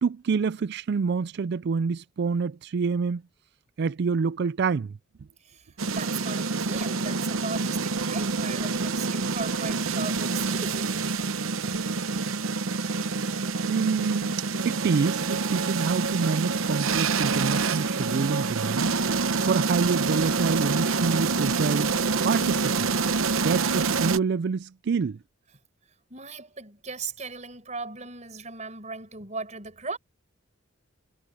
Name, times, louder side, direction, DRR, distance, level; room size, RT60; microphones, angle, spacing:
voice 1, 0.0-3.2 3.8-5.0 11.7-11.8 12.1-12.2 13.7-18.9 19.4-22.0 22.2-22.9 23.4-25.2, right 5 dB, 55° right, 0.4 m, -27 dB
sound 1, 5.8-24.2, right 4 dB, 85° right, 0.9 m, -27 dB
voice 2, 5.9-11.1 26.1-30.0, right 4 dB, 35° right, 5.3 m, -37 dB
head